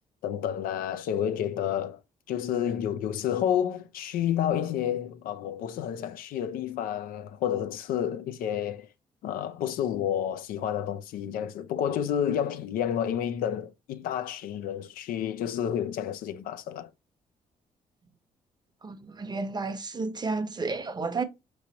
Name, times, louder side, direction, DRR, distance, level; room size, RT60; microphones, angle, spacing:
voice 1, 0.2-2.0 2.3-8.9 9.2-16.9, left 9 dB, 80° left, 0.5 m, -30 dB
voice 2, 18.8-21.2, right 3 dB, 30° right, 0.8 m, -32 dB
5.0 x 3.1 x 2.8 m
cardioid pair, 75°, 15 cm